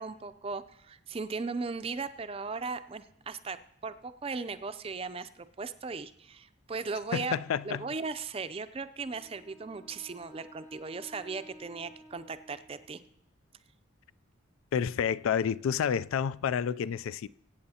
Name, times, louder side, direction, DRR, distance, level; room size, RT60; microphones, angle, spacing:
voice 1, 0.0-3.6 3.8-7.4 7.6-13.0, right 4 dB, 30° right, 0.4 m, -37 dB
voice 2, 7.1-7.9 14.7-17.3, left 7 dB, 80° left, 0.3 m, -29 dB
Wind instrument woodwind instrument, 9.0-13.2, right 1 dB, 10° left, 0.6 m, -54 dB
22.5 x 8.7 x 2.8 m
head